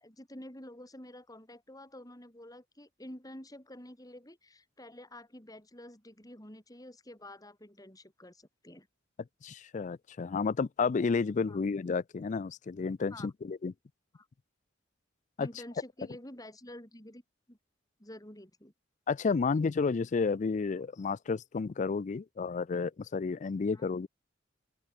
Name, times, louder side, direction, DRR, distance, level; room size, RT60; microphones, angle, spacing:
voice 1, 0.0-8.9 11.5-11.6 13.1-13.3 14.1-14.3 15.4-17.2 17.5-17.6 18.0-18.7 23.7-23.9, left 1 dB, 20° left, 6.8 m, -49 dB
voice 2, 9.4-13.7 15.4-15.5 19.1-24.1, left 4 dB, 40° left, 0.4 m, -31 dB
open air
head